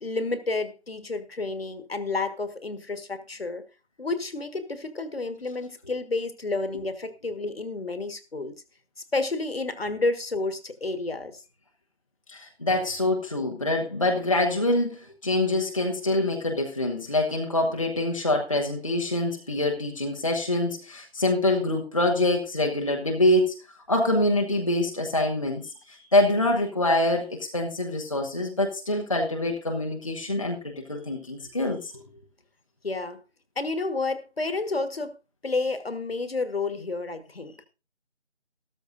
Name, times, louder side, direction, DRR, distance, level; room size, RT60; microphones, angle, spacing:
voice 1, 0.0-3.6 4.0-8.6 9.1-11.4 32.8-33.2 33.6-35.2 35.4-37.6, left 3 dB, 55° left, 1.6 m, -30 dB
voice 2, 12.3-23.6 23.9-31.9, left 1 dB, 30° left, 1.0 m, -25 dB
14.0 x 13.5 x 2.6 m
figure-of-eight pair, 165°, 35 cm